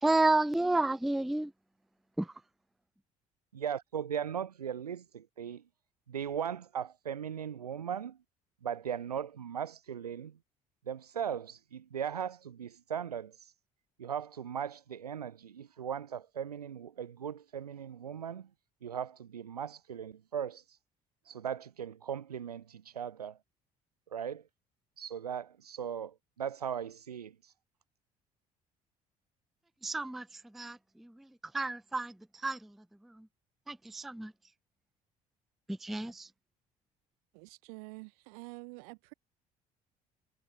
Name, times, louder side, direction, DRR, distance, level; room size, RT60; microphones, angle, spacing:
voice 1, 0.0-1.5 2.2-2.3 29.8-30.3 30.5-31.1 31.5-32.1 32.4-32.7 33.2-33.3 33.7-34.3 35.7-36.3, right 2 dB, ahead, 0.4 m, -30 dB
voice 2, 3.5-5.6 6.1-8.2 8.6-10.4 10.9-13.5 14.0-18.5 18.8-20.8 21.3-23.4 24.1-24.4 25.0-27.5, right 8 dB, 90° right, 0.6 m, -38 dB
voice 3, 37.3-39.1, right 31 dB, 70° right, 2.3 m, -48 dB
figure-of-eight pair, 55°, 19 cm